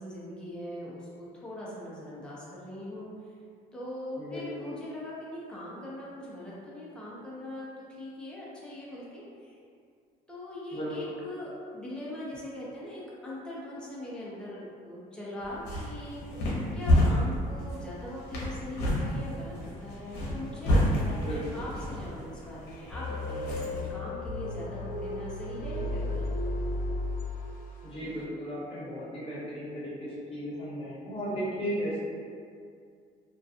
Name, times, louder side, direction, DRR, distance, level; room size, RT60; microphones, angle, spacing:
voice 1, 0.0-3.1 3.7-9.6 10.3-16.2 16.7-26.3, left 1 dB, 5° left, -7 dB, 0.6 m, -41 dB
voice 2, 4.2-4.7 10.7-11.2 21.1-21.6 27.8-32.0, equal, 35° left, -8 dB, 0.9 m, -35 dB
sound 1, 15.4-23.9, left 1 dB, 80° left, 0.7 m, -29 dB
sound 2, 22.9-27.9, left 1 dB, 55° left, 0.4 m, -34 dB
2.4 x 2.2 x 2.6 m, 2.2 s
cardioid pair, 110°, 17 cm